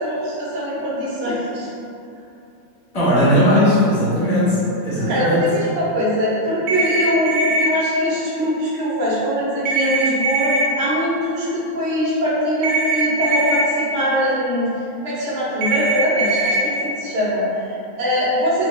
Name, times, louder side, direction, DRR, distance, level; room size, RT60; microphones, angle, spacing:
voice 1, 0.0-1.7 5.0-14.7 15.0-18.7, equal, 45° right, -8 dB, 1.0 m, -22 dB
voice 2, 2.9-5.5, equal, 20° left, -12 dB, 1.2 m, -17 dB
sound 1, 6.7-7.7 9.7-10.7 12.6-13.6 15.6-16.6, right 2 dB, 70° right, 1.3 m, -20 dB
3.4 x 2.7 x 3.2 m, 2.7 s
omnidirectional pair, 2.3 m